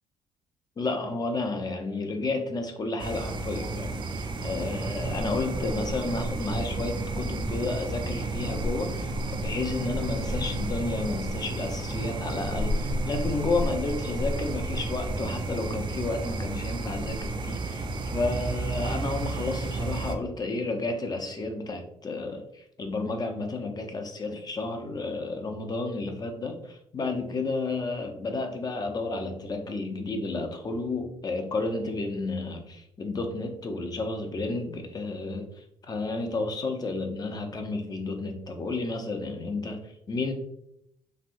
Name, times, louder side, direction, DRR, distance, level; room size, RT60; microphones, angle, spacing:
voice 1, 0.8-40.3, left 3 dB, 35° left, 4 dB, 0.6 m, -32 dB
sound 1, 3.0-20.1, right 2 dB, 40° right, 0.5 m, -31 dB
3.3 x 2.6 x 2.5 m, 0.76 s
supercardioid pair, 70°, 12 cm